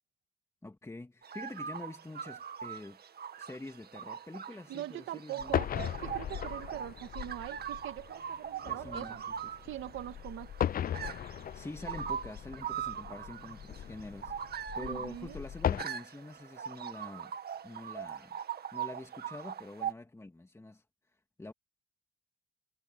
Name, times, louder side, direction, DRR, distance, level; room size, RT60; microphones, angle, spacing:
voice 1, 0.6-3.0 3.4-5.6 8.7-9.5 11.5-17.3 17.6-18.4 18.7-20.8 21.4-21.5, left 2 dB, 15° left, 2.5 m, -46 dB
sound 1, 1.2-19.9, right 8 dB, 55° right, 1.9 m, -41 dB
voice 2, 4.7-9.2 9.6-10.5 14.8-15.4, right 13 dB, 85° right, 2.4 m, -42 dB
sound 2, 5.4-15.8, left 10 dB, 45° left, 0.5 m, -38 dB
cardioid pair, 90°, 20 cm